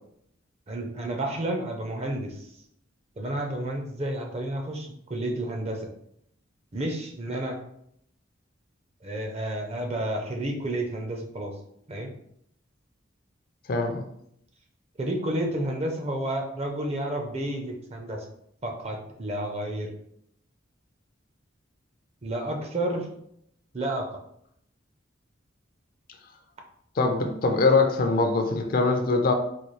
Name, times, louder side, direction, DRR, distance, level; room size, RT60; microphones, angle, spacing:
voice 1, 0.7-2.5 3.2-5.9 6.7-7.6 9.0-11.5 11.9-12.1 15.0-18.3 18.6-19.9 22.2-23.1 23.7-24.1, right 1 dB, 30° right, 2 dB, 0.5 m, -31 dB
voice 2, 13.7-14.0 27.0-29.3, left 3 dB, 45° left, 5 dB, 0.4 m, -22 dB
4.0 x 2.3 x 3.1 m, 0.72 s
head